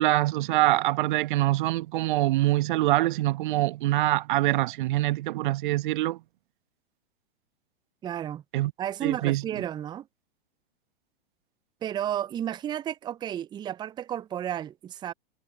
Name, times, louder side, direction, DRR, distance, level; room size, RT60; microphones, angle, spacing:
voice 1, 0.0-6.2 8.5-8.7 9.0-9.4, right 17 dB, 50° right, 1.2 m, -24 dB
voice 2, 8.0-8.4 8.8-10.1 11.8-15.1, right 10 dB, 15° right, 0.5 m, -32 dB
figure-of-eight pair, 105°, 31 cm